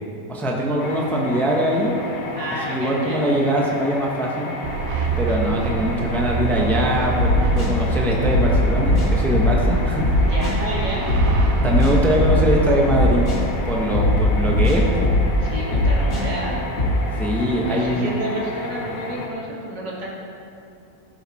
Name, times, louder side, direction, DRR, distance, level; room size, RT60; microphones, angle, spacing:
voice 1, 0.3-1.9 2.6-4.5 5.2-10.2 11.6-13.3 13.6-15.1 17.2-18.1, equal, ahead, -2 dB, 0.9 m, -22 dB
sound 1, 0.8-19.3, left 3 dB, 75° left, 1.6 m, -33 dB
voice 2, 2.4-3.3 10.2-11.1 15.4-16.7 17.7-20.1, right 1 dB, 80° right, -5 dB, 2.9 m, -30 dB
sound 2, 4.6-14.0, right 5 dB, 65° right, 0.9 m, -26 dB
sound 3, 7.2-7.7 8.2-9.7 10.0-10.5 11.1-12.5 12.9-13.4 13.9-15.4 15.7-16.2 16.8-16.9, left 1 dB, 55° left, 2.5 m, -19 dB
16.0 x 6.8 x 4.2 m, 2.7 s
omnidirectional pair, 1.8 m